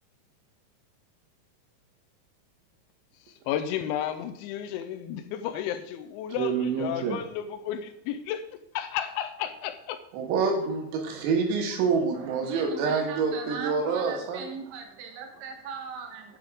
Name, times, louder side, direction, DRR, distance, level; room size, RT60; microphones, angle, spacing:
voice 1, 3.5-8.5 8.7-10.0, left 10 dB, 80° left, 2.9 m, -32 dB
voice 2, 6.3-7.2 12.5-16.2, right 8 dB, 70° right, 3.3 m, -34 dB
voice 3, 10.1-14.5, right 5 dB, 90° right, 4.3 m, -27 dB
12.5 x 7.7 x 3.7 m
omnidirectional pair, 5.9 m